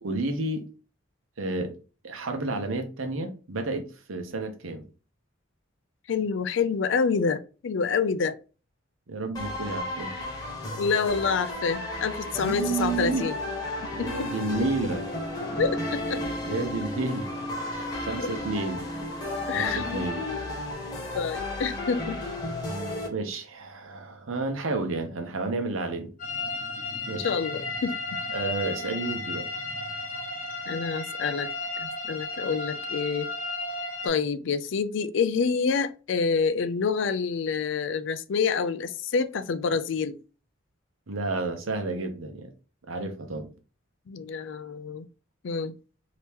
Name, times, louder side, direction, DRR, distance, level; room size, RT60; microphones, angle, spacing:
voice 1, 0.0-0.7 1.4-1.8 2.0-4.9 9.1-10.1 12.4-13.3 13.9-15.1 16.5-17.3 17.6-18.9 19.5-20.2 23.1-26.1 27.1-27.3 28.3-29.4 41.1-42.5 42.9-43.5, right 3 dB, 85° right, 0.8 m, -31 dB
voice 2, 6.1-8.4 10.8-13.4 13.8-14.7 15.6-16.2 18.2-18.3 19.5-20.4 20.9-22.2 27.2-28.0 30.7-31.5 31.8-33.3 34.0-40.2 44.1-45.1 45.4-45.7, left 5 dB, 65° left, 0.4 m, -27 dB
sound 1, 9.3-23.1, left 2 dB, 20° left, 1.1 m, -34 dB
sound 2, 13.8-19.6, equal, 10° right, 0.6 m, -38 dB
sound 3, 26.2-34.1, left 3 dB, 40° left, 0.9 m, -34 dB
2.9 x 2.9 x 3.4 m
head